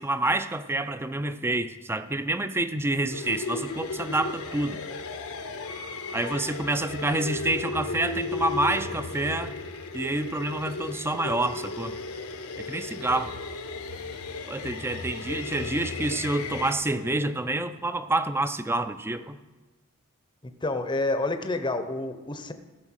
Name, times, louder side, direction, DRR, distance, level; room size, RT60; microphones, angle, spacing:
voice 1, 0.0-4.8 6.1-9.5 9.9-12.0 12.7-13.3 14.5-19.4, right 2 dB, 10° right, 11 dB, 0.5 m, -28 dB
sound 1, 3.1-16.7, left 3 dB, 90° left, 1.2 m, -35 dB
voice 2, 20.4-22.5, left 2 dB, 20° left, 8 dB, 0.7 m, -29 dB
15.0 x 6.4 x 6.3 m, 1.2 s
head